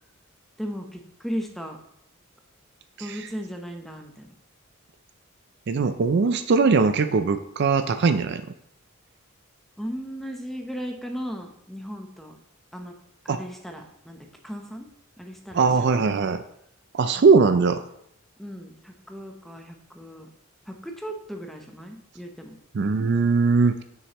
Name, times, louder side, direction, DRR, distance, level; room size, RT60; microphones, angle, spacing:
voice 1, 0.6-1.8 3.0-4.3 9.8-12.4 12.7-12.9 13.2-14.9 15.2-16.1 18.4-20.3 20.7-22.6, equal, ahead, 3 dB, 0.8 m, -36 dB
voice 2, 5.7-8.4 13.3-13.4 15.5-16.4 16.9-17.8 22.7-23.8, right 4 dB, 50° right, 9 dB, 0.4 m, -20 dB
9.2 x 6.6 x 3.0 m, 0.72 s
head